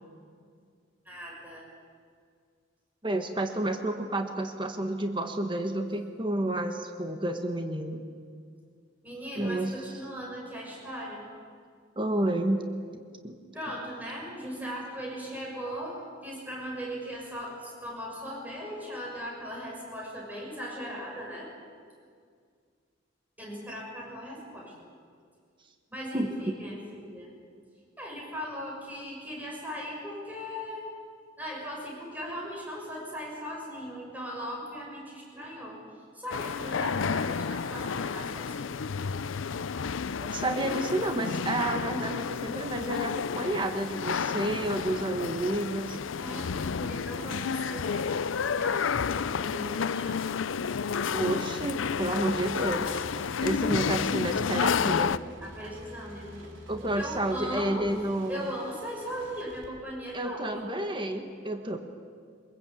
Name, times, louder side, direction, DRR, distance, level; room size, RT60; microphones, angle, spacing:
voice 1, 1.0-1.6 9.0-11.2 13.5-16.0 16.2-21.5 23.4-24.7 25.9-27.3 28.0-30.8 31.4-35.8 36.1-38.8 46.2-50.2 55.4-56.5 56.8-57.9 58.3-60.7, equal, 10° right, -3 dB, 6.4 m, -38 dB
voice 2, 3.0-8.0 9.3-9.8 11.9-12.6 13.2-13.4 26.1-26.5 40.2-46.0 51.1-53.0 53.4-55.2 56.7-58.5 60.1-61.8, right 1 dB, 25° right, 5 dB, 1.5 m, -30 dB
sound 1, 36.3-55.2, left 6 dB, 85° left, 0.5 m, -31 dB
sound 2, 51.4-59.7, equal, 80° right, 4.1 m, -48 dB
24.0 x 22.0 x 8.5 m, 2.1 s
head